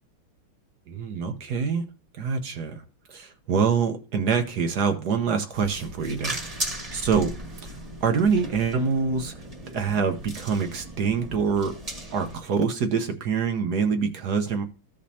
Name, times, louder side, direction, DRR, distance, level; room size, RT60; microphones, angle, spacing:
voice 1, 0.9-1.8 2.2-2.8 3.1-6.4 6.9-9.3 9.6-11.8 12.1-14.6, right 5 dB, 60° right, 1.2 m, -25 dB
sound 1, 5.5-12.4, right 1 dB, 20° right, 1.4 m, -37 dB
14.5 x 5.2 x 2.8 m
omnidirectional pair, 2.2 m